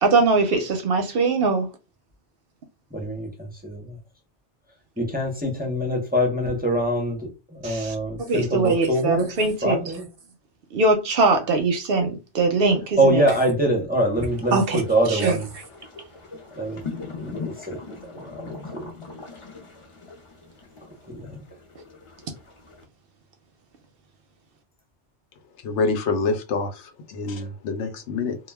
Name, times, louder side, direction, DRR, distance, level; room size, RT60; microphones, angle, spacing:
voice 1, 0.0-1.7 7.6-9.8 10.7-13.2 14.5-14.8 15.1-15.4, right 3 dB, 65° right, 0.7 m, -21 dB
voice 2, 2.9-4.0 5.0-9.3 9.6-10.1 13.0-15.4 16.6-16.8 17.2-17.8 18.1-18.9 21.1-21.4, right 1 dB, 10° right, 0.4 m, -24 dB
sound 1, 14.1-22.8, left 4 dB, 35° left, 0.5 m, -40 dB
voice 3, 25.6-28.4, left 4 dB, 80° left, 0.9 m, -26 dB
2.2 x 2.2 x 3.3 m
omnidirectional pair, 1.2 m